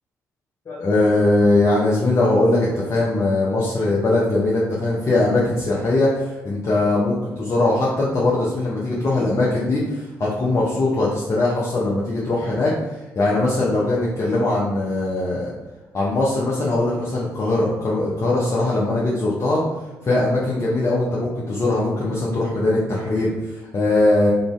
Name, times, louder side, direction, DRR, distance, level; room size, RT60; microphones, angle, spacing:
voice 1, 0.7-15.5 15.9-19.6 20.0-24.3, left 2 dB, 40° left, -6 dB, 0.6 m, -21 dB
2.5 x 2.3 x 3.1 m, 1.0 s
hypercardioid pair, 45°, 8 cm